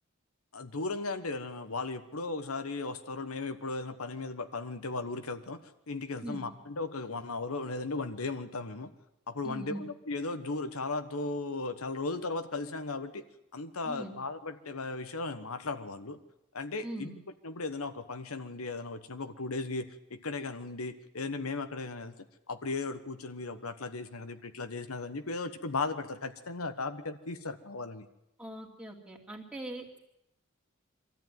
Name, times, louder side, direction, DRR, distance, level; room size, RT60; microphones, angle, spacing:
voice 1, 0.5-5.6 5.9-8.9 9.3-13.2 13.5-16.2 16.5-17.1 17.4-22.1 22.5-28.1, left 3 dB, 90° left, 9 dB, 1.3 m, -36 dB
voice 2, 9.4-9.8 13.8-14.1 16.8-17.1 28.4-30.0, right 1 dB, 5° right, -1 dB, 2.6 m, -41 dB
23.5 x 14.0 x 9.3 m, 0.86 s
head